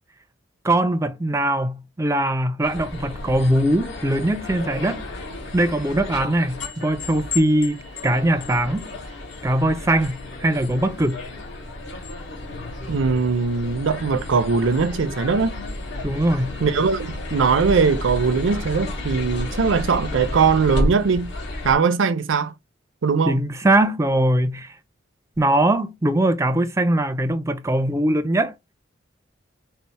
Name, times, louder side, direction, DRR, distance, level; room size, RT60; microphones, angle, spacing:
voice 1, 0.6-5.1 5.5-8.9 9.4-11.2 16.0-16.6 23.3-24.7 25.4-28.5, right 1 dB, 15° right, 0.4 m, -21 dB
sound 1, 2.6-21.7, left 1 dB, 75° left, 1.5 m, -32 dB
voice 2, 12.9-15.6 16.6-21.3 21.6-22.5 23.0-23.4, right 5 dB, 80° right, 0.5 m, -20 dB
4.2 x 2.0 x 4.1 m
head